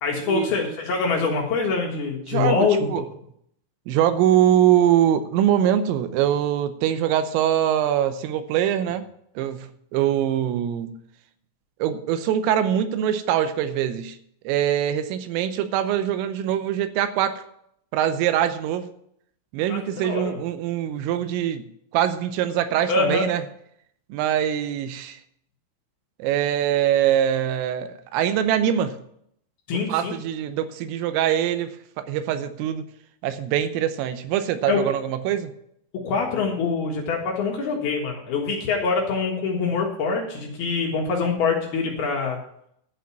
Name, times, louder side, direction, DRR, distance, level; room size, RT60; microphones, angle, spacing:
voice 1, 0.0-2.9 19.7-20.4 22.9-23.3 29.7-30.1 34.7-34.8 35.9-42.4, left 4 dB, 65° left, 0 dB, 2.9 m, -24 dB
voice 2, 2.3-3.0 3.9-9.1 9.4-11.0 11.8-14.2 14.4-17.4 17.9-18.9 19.5-23.4 24.1-25.2 26.2-29.0 29.9-32.8 33.2-35.5, right 10 dB, 85° right, 10 dB, 3.4 m, -23 dB
12.0 x 5.3 x 8.6 m, 0.71 s
omnidirectional pair, 5.9 m